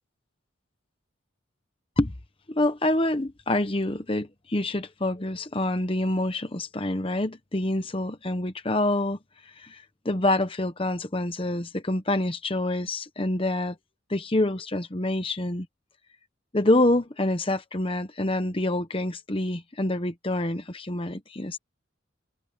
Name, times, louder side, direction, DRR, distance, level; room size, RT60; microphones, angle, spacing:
voice 1, 2.5-9.2 9.6-13.8 14.1-15.7 16.5-21.6, left 1 dB, 25° left, 1.0 m, -26 dB
head